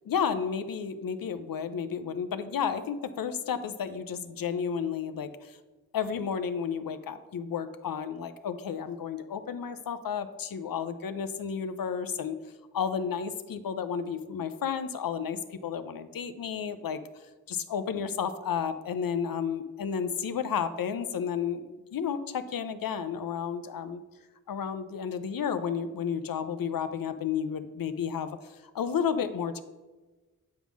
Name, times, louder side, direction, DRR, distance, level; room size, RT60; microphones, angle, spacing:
voice 1, 0.1-5.6 5.9-12.3 12.7-17.0 17.5-24.0 24.5-28.4 28.7-29.6, left 7 dB, 80° left, 11 dB, 0.6 m, -32 dB
8.9 x 3.7 x 6.1 m, 1.2 s
wide cardioid pair, 75°, 34 cm